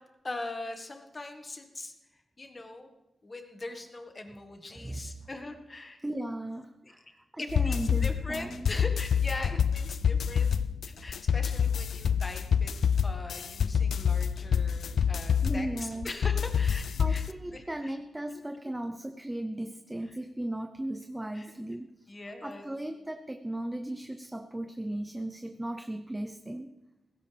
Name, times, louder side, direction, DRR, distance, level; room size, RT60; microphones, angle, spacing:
voice 1, 0.2-1.9 2.4-2.9 3.2-6.0 6.8-6.9 7.4-10.5 10.8-12.7 13.0-17.9 20.1-20.2 21.3-21.5 22.1-22.7, left 2 dB, 30° left, 5 dB, 1.8 m, -41 dB
voice 2, 6.0-7.0 7.3-8.7 9.5-9.6 15.4-16.1 17.0-22.1 22.4-26.7, right 1 dB, 10° right, 7 dB, 0.7 m, -36 dB
sound 1, 7.5-17.3, left 7 dB, 75° left, 0.4 m, -27 dB
17.0 x 16.5 x 3.5 m, 1.0 s
wide cardioid pair, 100°, 0 cm